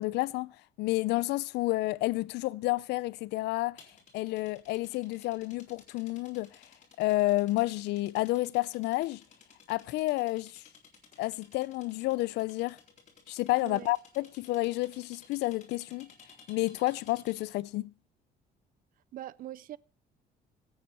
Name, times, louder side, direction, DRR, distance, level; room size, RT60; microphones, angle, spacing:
voice 1, 0.0-3.8 4.1-6.5 7.0-9.2 9.7-10.6 11.2-12.8 13.3-16.1 16.5-17.9, left 19 dB, 80° left, 0.5 m, -30 dB
sound 1, 3.8-17.6, left 5 dB, 45° left, 4.0 m, -57 dB
voice 2, 13.6-13.9 19.1-19.8, right 13 dB, 55° right, 0.5 m, -42 dB
17.0 x 8.7 x 4.2 m
cardioid pair, 110°, 17 cm